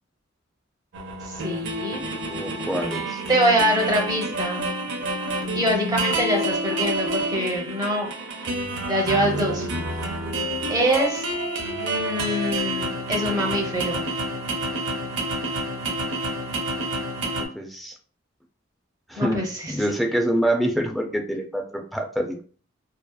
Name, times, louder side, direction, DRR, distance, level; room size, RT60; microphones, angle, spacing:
sound 1, 0.9-17.4, right 1 dB, 65° right, 0.5 m, -28 dB
voice 1, 1.2-2.0 3.3-4.7 5.5-8.1 8.9-9.7 10.1-10.2 10.7-11.2 11.8-14.1 19.2-19.8, right 1 dB, 20° right, 0 dB, 0.7 m, -24 dB
voice 2, 2.3-3.2 5.2-5.3 17.4-17.9 19.1-22.4, right 1 dB, ahead, 2 dB, 0.3 m, -26 dB
2.7 x 2.3 x 2.2 m, 0.43 s
head